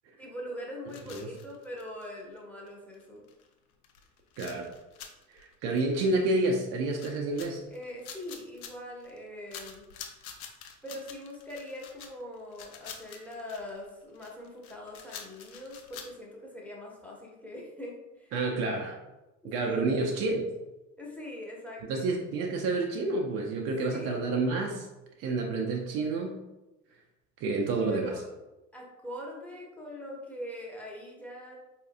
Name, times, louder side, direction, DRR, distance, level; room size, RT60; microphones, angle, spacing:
voice 1, 0.2-3.3 7.7-9.9 10.8-18.3 19.4-19.9 21.0-22.1 23.9-24.2 27.9-28.3 28.7-31.6, left 1 dB, 5° left, -2 dB, 0.7 m, -42 dB
sound 1, 0.9-2.4 2.7-2.8 2.9-3.0 3.3-3.5 3.8-6.5 6.9-9.2 9.5-16.1, left 7 dB, 60° left, 0.6 m, -47 dB
voice 2, 4.4-4.7 5.3-7.6 18.3-19.0 19.4-20.5 21.9-24.9 25.2-26.4 27.4-28.1, right 3 dB, 30° right, 1 dB, 0.4 m, -29 dB
4.5 x 2.7 x 2.5 m, 1.0 s
figure-of-eight pair, 65°, 49 cm